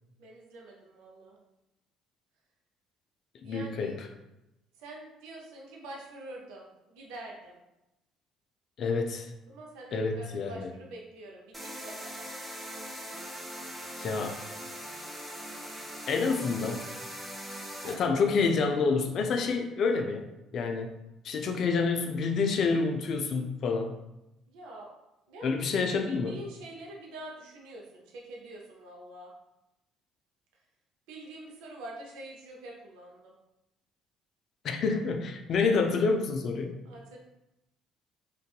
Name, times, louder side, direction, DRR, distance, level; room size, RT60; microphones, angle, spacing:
voice 1, 0.2-1.4 3.4-3.9 4.8-7.6 9.5-12.3 17.8-18.0 24.5-24.9 25.3-25.6 26.0-29.3 31.1-33.3 36.8-37.2, right 1 dB, 75° right, -2 dB, 0.5 m, -45 dB
voice 2, 3.4-4.1 8.8-9.3 9.9-10.7 14.0-14.4 16.1-16.9 17.8-20.3 20.5-21.0 21.2-23.9 25.4-26.4 34.6-36.8, left 4 dB, 55° left, 5 dB, 0.3 m, -28 dB
sound 1, 11.5-17.9, equal, 5° right, 0.7 m, -41 dB
2.6 x 2.3 x 2.3 m, 0.91 s
hypercardioid pair, 55°, 0 cm